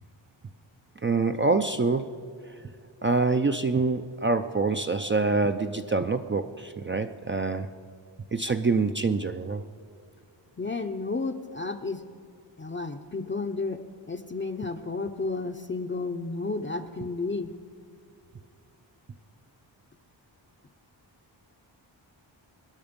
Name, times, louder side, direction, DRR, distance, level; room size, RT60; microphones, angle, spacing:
voice 1, 1.0-2.1 3.0-7.7 8.3-9.6, right 3 dB, 25° right, 8 dB, 0.4 m, -25 dB
voice 2, 10.6-12.0 12.6-13.8 14.1-17.5, left 3 dB, 25° left, 6 dB, 0.6 m, -32 dB
25.0 x 10.5 x 5.2 m, 2.3 s
wide cardioid pair, 155°, 46 cm